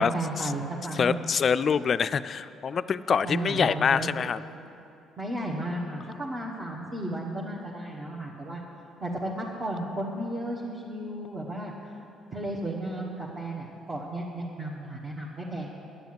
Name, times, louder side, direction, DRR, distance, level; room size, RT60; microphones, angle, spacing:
voice 1, 0.0-1.3 3.2-4.4 5.2-8.6 9.0-11.9 12.3-15.7, right 1 dB, 35° right, -4 dB, 1.3 m, -34 dB
voice 2, 0.9-4.4, left 6 dB, 50° left, 14 dB, 0.3 m, -25 dB
10.0 x 7.0 x 7.8 m, 2.7 s
supercardioid pair, 70°, 0 cm